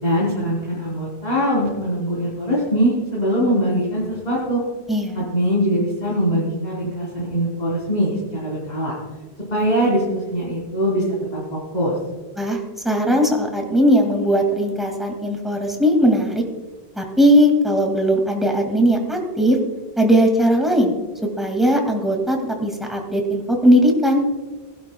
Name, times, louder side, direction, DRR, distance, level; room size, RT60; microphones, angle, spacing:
voice 1, 0.0-4.6 5.2-9.0 9.5-11.0 11.3-12.0, equal, 45° left, -7 dB, 3.7 m, -22 dB
voice 2, 4.9-5.2 12.4-16.4 17.0-19.6 20.0-20.9 21.4-24.3, equal, ahead, 1 dB, 2.1 m, -18 dB
20.0 x 12.0 x 2.3 m, 1.3 s
omnidirectional pair, 1.1 m